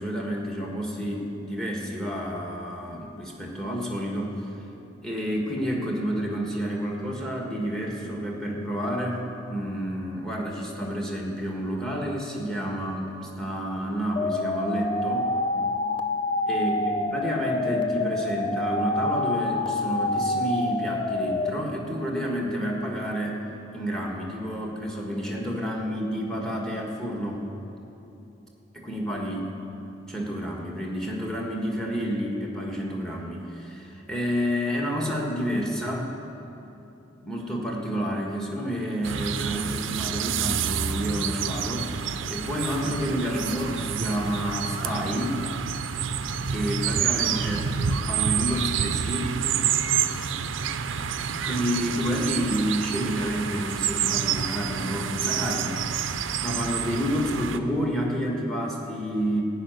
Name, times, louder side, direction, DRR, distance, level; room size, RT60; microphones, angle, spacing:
voice 1, 0.0-4.5 5.0-15.3 16.5-23.4 23.7-27.5 28.7-29.5 30.1-36.1 37.2-45.4 46.5-49.3 51.4-59.4, equal, 5° left, -1 dB, 1.5 m, -29 dB
sound 1, 14.2-21.5, left 2 dB, 25° left, 0.5 m, -27 dB
sound 2, 39.0-57.6, right 7 dB, 70° right, 0.5 m, -28 dB
15.0 x 5.8 x 9.2 m, 3.0 s
head